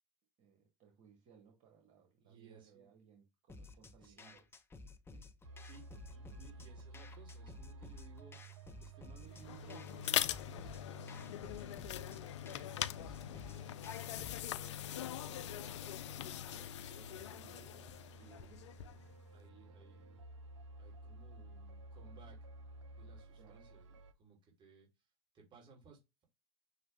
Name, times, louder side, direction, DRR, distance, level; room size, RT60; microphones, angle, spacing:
voice 1, 0.4-4.5 5.1-5.2 11.4-11.8 17.3-17.6 23.3-23.6, right 7 dB, 50° right, 1.6 m, -64 dB
voice 2, 2.2-2.9 4.0-4.4 5.6-5.8 6.1-8.4 8.8-13.8 14.6-18.6 19.3-20.2 20.8-22.4 23.0-26.2, right 5 dB, 30° right, 2.7 m, -61 dB
sound 1, 3.5-14.5, left 3 dB, 15° left, 0.7 m, -55 dB
sound 2, 5.4-24.1, right 2 dB, 80° right, 0.7 m, -54 dB
sound 3, 9.3-19.1, left 12 dB, 75° left, 0.4 m, -42 dB
6.3 x 2.3 x 3.4 m
hypercardioid pair, 80°, 15 cm